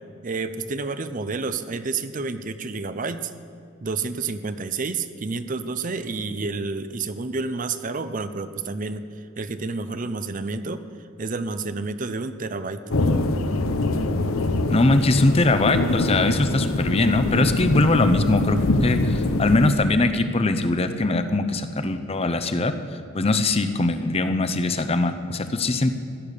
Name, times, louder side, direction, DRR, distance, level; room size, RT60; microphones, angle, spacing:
voice 1, 0.2-3.3 3.8-10.8 11.2-12.8, right 4 dB, 40° right, 11 dB, 0.6 m, -29 dB
sound 1, 12.9-19.7, left 2 dB, 85° left, 0.9 m, -23 dB
voice 2, 14.7-22.7 23.1-25.9, left 2 dB, 30° left, 9 dB, 0.7 m, -21 dB
15.5 x 10.5 x 6.7 m, 2.5 s
head